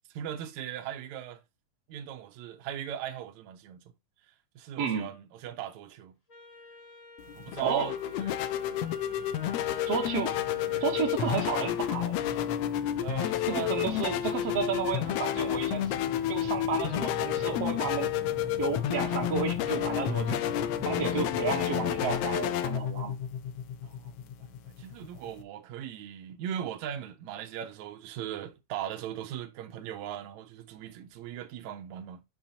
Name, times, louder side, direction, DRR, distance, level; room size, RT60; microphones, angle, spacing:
voice 1, 0.1-1.4 1.9-3.8 4.6-6.2 7.3-8.5 10.7-10.9 13.0-13.7 23.8-32.2, right 10 dB, 75° right, 2.0 m, -39 dB
voice 2, 4.8-5.1 7.6-7.9 9.9-10.4 10.8-12.2 13.5-15.9 16.3-18.1 18.6-20.4 20.8-23.2, right 6 dB, 60° right, 2.2 m, -32 dB
Wind instrument woodwind instrument, 6.3-11.2, left 1 dB, 30° left, 2.2 m, -49 dB
sound 1, 7.2-25.4, left 11 dB, 85° left, 1.4 m, -30 dB
sound 2, 8.3-22.2, left 1 dB, 45° left, 1.7 m, -43 dB
7.2 x 5.4 x 2.7 m
omnidirectional pair, 3.6 m